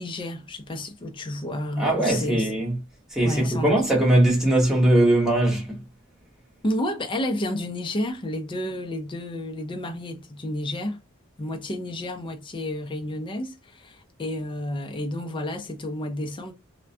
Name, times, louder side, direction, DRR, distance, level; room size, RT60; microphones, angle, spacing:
voice 1, 0.0-2.5 3.2-3.8 6.6-11.0 11.4-16.5, left 1 dB, 25° left, 0.4 m, -31 dB
voice 2, 1.8-2.7 3.1-5.8, right 1 dB, 5° right, 1.0 m, -20 dB
2.2 x 2.1 x 2.6 m
head